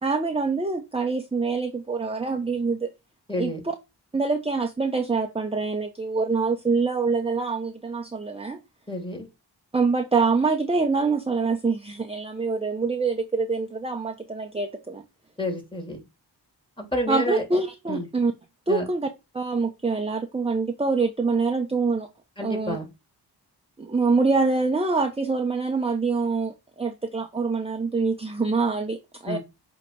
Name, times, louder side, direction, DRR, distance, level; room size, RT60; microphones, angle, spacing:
voice 1, 0.0-2.9 3.4-3.7 4.1-8.6 9.7-15.0 17.1-18.3 18.7-19.1 19.3-22.1 22.4-22.8 23.8-29.4, right 4 dB, 15° right, 0.9 m, -25 dB
voice 2, 3.3-3.6 8.9-9.3 15.4-16.0 16.8-17.6 17.9-18.1 18.7-18.9 22.4-22.9 29.2-29.4, left 1 dB, 10° left, 2.9 m, -29 dB
7.6 x 3.1 x 4.6 m
cardioid pair, 60°, 42 cm